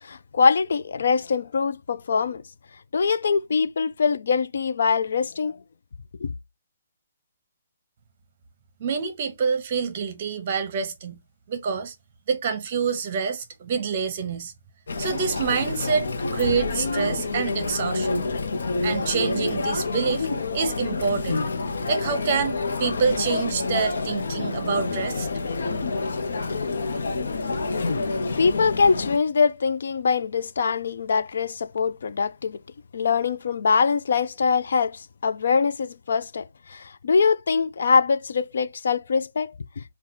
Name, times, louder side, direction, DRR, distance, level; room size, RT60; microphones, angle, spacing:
voice 1, 0.0-2.4 2.9-5.6 6.2-6.3 28.4-32.6 32.9-39.8, left 5 dB, 60° left, 0.4 m, -23 dB
voice 2, 8.8-11.2 11.5-11.9 12.3-14.5 15.0-18.2 18.8-20.3 20.5-21.5 21.9-25.3, right 6 dB, 30° right, 0.7 m, -27 dB
Chatter, 14.9-29.2, left 3 dB, 80° left, 0.8 m, -28 dB
4.3 x 2.3 x 3.9 m
hypercardioid pair, 175°, 0 cm